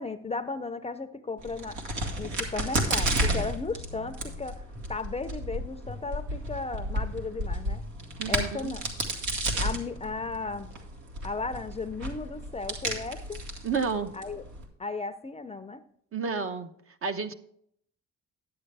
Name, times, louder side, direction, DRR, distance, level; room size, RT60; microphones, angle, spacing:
voice 1, 0.0-1.8 2.2-4.6 4.9-7.8 8.3-8.9 9.6-10.7 11.2-13.4 14.1-14.4 14.8-15.8, left 3 dB, 20° left, 11 dB, 0.5 m, -35 dB
Crack, 1.4-14.6, right 1 dB, 80° right, 1.9 m, -32 dB
voice 2, 8.2-8.7 13.6-14.1 16.1-16.7 17.0-17.3, right 5 dB, 45° right, 8 dB, 0.9 m, -30 dB
10.5 x 8.6 x 3.3 m, 0.69 s
cardioid pair, 90°, 30 cm